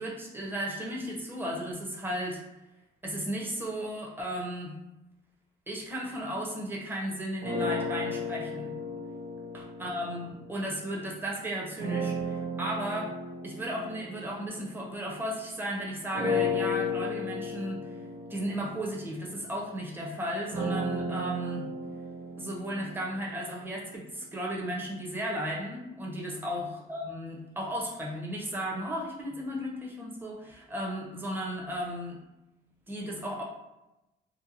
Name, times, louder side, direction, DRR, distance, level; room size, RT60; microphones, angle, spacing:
voice 1, 0.0-2.4 3.0-4.8 5.7-8.7 9.8-13.1 13.4-17.8 18.3-21.7 22.4-32.2 32.9-33.4, equal, 10° right, -3 dB, 0.7 m, -35 dB
sound 1, 7.4-11.0 11.8-15.6 16.1-24.1, left 2 dB, 55° right, 1.3 m, -35 dB
2.7 x 2.2 x 2.6 m, 0.95 s
cardioid pair, 90°, 20 cm